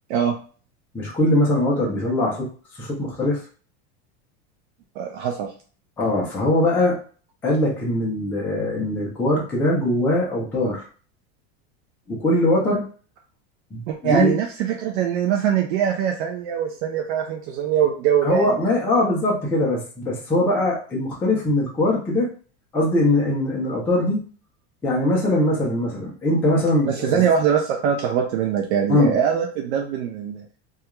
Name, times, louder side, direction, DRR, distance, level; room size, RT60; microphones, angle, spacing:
voice 1, 0.9-3.4 6.0-7.0 7.4-10.8 12.1-12.8 13.7-14.3 18.2-22.3 22.7-24.2 24.8-27.2 28.9-29.1, left 1 dB, 5° left, -4 dB, 0.3 m, -21 dB
voice 2, 5.0-5.5 13.9-18.6 26.9-30.6, right 8 dB, 80° right, 2 dB, 0.5 m, -22 dB
2.3 x 2.3 x 2.9 m, 0.41 s
supercardioid pair, 165°, 33 cm